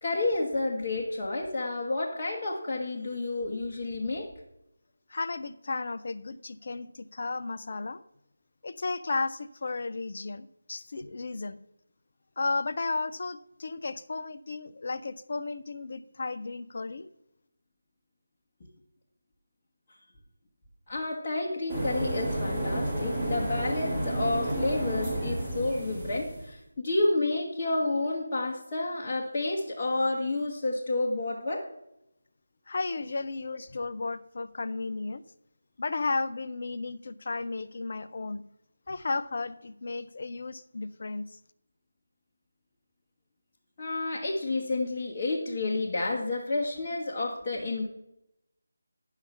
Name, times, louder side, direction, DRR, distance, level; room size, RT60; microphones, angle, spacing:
voice 1, 0.0-4.3 18.6-18.7 20.9-31.6 43.8-47.9, left 2 dB, 25° left, -5 dB, 1.2 m, -30 dB
voice 2, 5.1-8.0 8.6-11.6 12.4-17.1 32.7-35.2 35.8-38.4 38.9-41.4, left 3 dB, 45° left, 13 dB, 0.5 m, -34 dB
sound 1, 21.7-26.5, right 1 dB, 25° right, 3.5 m, -31 dB
10.5 x 5.8 x 5.8 m, 0.84 s
figure-of-eight pair, 155°, 0 cm